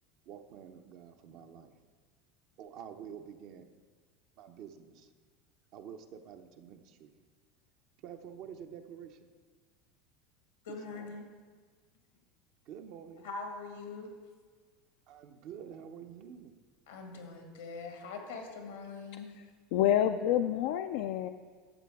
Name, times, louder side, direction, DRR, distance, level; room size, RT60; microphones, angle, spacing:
voice 1, 0.3-1.8 2.6-3.8 4.4-5.1 5.7-7.2 8.0-9.3 10.7-11.2 12.6-13.3 15.1-16.6 18.2-18.3, right 8 dB, 60° right, 6 dB, 0.8 m, -48 dB
voice 2, 10.6-11.2 13.2-14.1 16.9-19.3, left 4 dB, 90° left, 3 dB, 1.7 m, -43 dB
voice 3, 19.7-21.3, left 11 dB, 70° left, 7 dB, 0.3 m, -27 dB
12.0 x 7.6 x 3.5 m, 1.5 s
hypercardioid pair, 100°, 0 cm